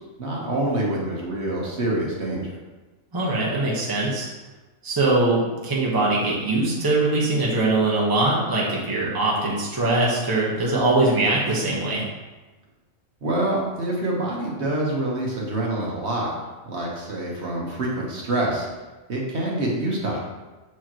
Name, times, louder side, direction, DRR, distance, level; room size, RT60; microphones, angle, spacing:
voice 1, 0.2-2.6 13.2-16.3 16.7-18.7 19.1-20.2, right 1 dB, 55° right, -3 dB, 1.4 m, -26 dB
voice 2, 3.1-4.3 4.8-12.1, right 2 dB, 20° right, -4 dB, 1.0 m, -22 dB
7.0 x 4.7 x 3.0 m, 1.2 s
omnidirectional pair, 1.4 m